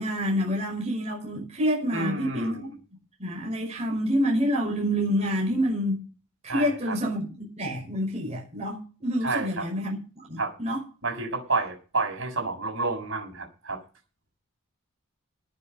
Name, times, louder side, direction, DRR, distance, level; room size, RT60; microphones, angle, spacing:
voice 1, 0.0-2.7 3.2-6.0 6.4-10.8, equal, 30° right, 5.6 m, -28 dB
voice 2, 1.9-2.7 6.5-7.0 9.2-9.7 10.4-10.5 11.0-13.8, right 3 dB, 60° right, 6.9 m, -30 dB
19.0 x 6.9 x 6.7 m
head